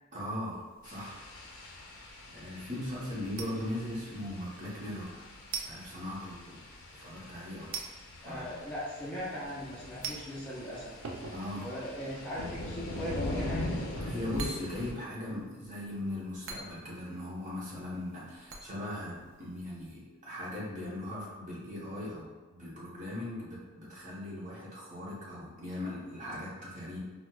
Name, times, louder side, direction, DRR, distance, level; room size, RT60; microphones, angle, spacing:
voice 1, 0.1-1.2 1.7-5.2 5.6-6.6 6.9-7.7 8.2-8.5 11.3-11.7 14.0-27.0, left 1 dB, 35° right, -6 dB, 0.9 m, -39 dB
sound 1, 0.6-19.9, right 5 dB, 60° right, 0.4 m, -48 dB
sound 2, 0.8-14.9, left 1 dB, 75° left, 0.5 m, -42 dB
voice 2, 8.2-11.0 11.6-13.7, equal, 5° left, -9 dB, 0.4 m, -39 dB
4.4 x 2.1 x 2.2 m, 1.3 s
head